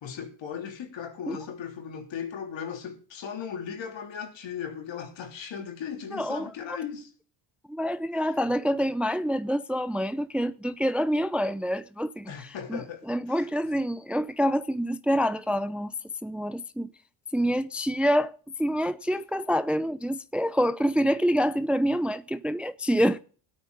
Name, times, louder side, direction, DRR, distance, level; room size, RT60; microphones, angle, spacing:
voice 1, 0.0-7.1 8.1-8.4 12.3-13.8, left 7 dB, 60° left, 3.4 m, -37 dB
voice 2, 6.1-6.5 7.7-12.3 12.7-12.8 13.1-15.9 16.2-16.9 17.3-23.2, equal, ahead, 0.6 m, -26 dB
20.0 x 8.8 x 4.0 m
supercardioid pair, 75°, 49 cm